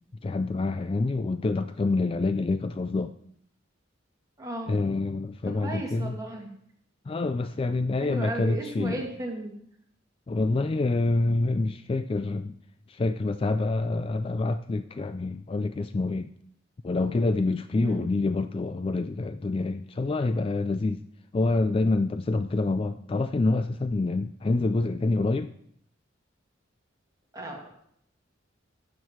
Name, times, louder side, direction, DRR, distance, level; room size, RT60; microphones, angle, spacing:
voice 1, 0.2-3.1 4.7-6.2 7.1-9.0 10.3-12.6 12.9-16.3 16.8-21.0 21.3-25.5, left 3 dB, 30° left, 11 dB, 0.3 m, -27 dB
voice 2, 4.4-4.8 5.6-6.5 8.0-9.5 17.8-18.1 27.3-27.7, right 2 dB, 20° right, -1 dB, 2.2 m, -35 dB
12.5 x 7.5 x 4.5 m, 0.69 s
head